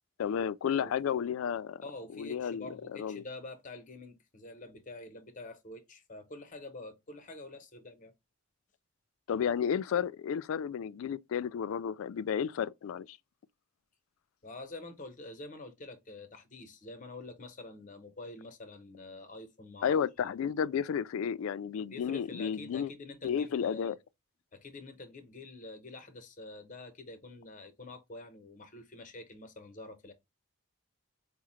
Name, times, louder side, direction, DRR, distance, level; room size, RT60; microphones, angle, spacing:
voice 1, 0.2-1.8 2.2-2.7 3.0-3.2 9.3-13.2 19.8-22.9 23.2-24.0, left 7 dB, 75° left, 0.3 m, -32 dB
voice 2, 1.8-8.1 14.4-20.0 20.2-20.5 21.9-24.0 24.5-30.1, left 2 dB, 35° left, 0.8 m, -47 dB
4.7 x 2.1 x 3.0 m
head